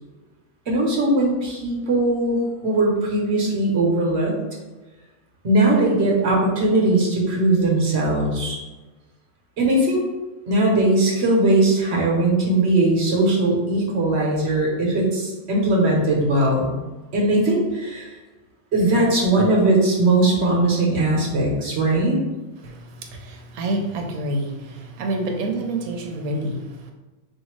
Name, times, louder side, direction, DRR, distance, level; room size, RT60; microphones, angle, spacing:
voice 1, 0.7-4.4 5.4-8.6 9.6-10.0 10.5-16.7 17.1-18.1 18.7-22.2, right 2 dB, 50° right, -1 dB, 1.2 m, -19 dB
voice 2, 22.6-26.9, right 1 dB, 75° right, 3 dB, 1.1 m, -28 dB
4.9 x 2.7 x 3.1 m, 1.2 s
omnidirectional pair, 1.5 m